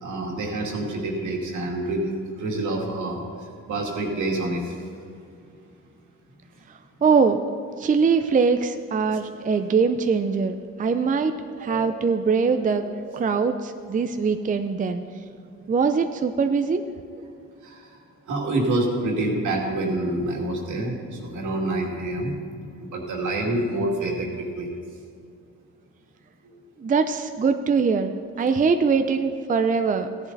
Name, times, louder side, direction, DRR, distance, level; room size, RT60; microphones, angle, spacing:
voice 1, 0.0-4.8 9.4-9.6 11.6-11.9 13.1-13.2 17.6-18.0 18.3-22.3 22.8-24.7, right 2 dB, 75° right, -1 dB, 2.5 m, -27 dB
voice 2, 7.0-7.4 7.8-11.3 11.6-15.0 15.7-16.9 26.8-28.1 28.4-30.1, right 5 dB, 25° right, 8 dB, 0.5 m, -22 dB
15.5 x 10.5 x 4.0 m, 2.4 s
cardioid pair, 90°, 30 cm